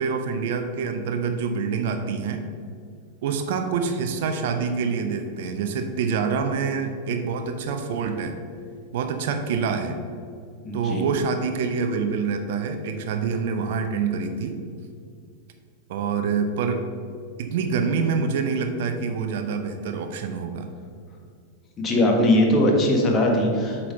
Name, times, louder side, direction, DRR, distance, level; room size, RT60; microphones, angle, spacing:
voice 1, 0.0-2.4 3.2-8.4 8.9-10.0 10.7-14.6 15.9-16.8 17.4-20.7, right 5 dB, 55° right, 6 dB, 0.7 m, -26 dB
voice 2, 10.6-11.0 21.8-23.9, left 1 dB, 25° left, 1 dB, 1.5 m, -20 dB
8.4 x 4.3 x 5.3 m, 2.2 s
figure-of-eight pair, 90°, 0 cm